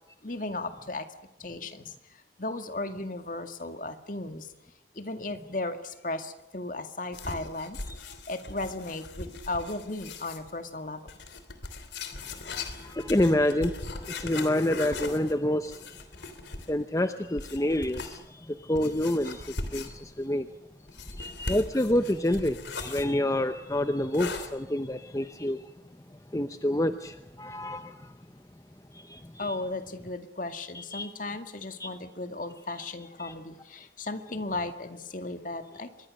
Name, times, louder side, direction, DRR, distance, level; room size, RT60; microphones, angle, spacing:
voice 1, 0.2-1.1 1.4-4.5 4.9-11.1 29.4-35.9, left 2 dB, 45° left, 2.1 m, -36 dB
sound 1, 7.1-10.5 11.1-16.8 17.4-18.2 18.7-20.2 20.9-23.1 24.1-24.5, left 3 dB, 80° left, 3.2 m, -39 dB
voice 2, 12.5-16.0 16.7-20.5 21.0-25.6 26.3-28.1 28.9-29.6 30.7-31.1 31.8-31.9 33.2-33.3, left 1 dB, 20° left, 0.8 m, -28 dB
25.5 x 22.5 x 6.6 m
head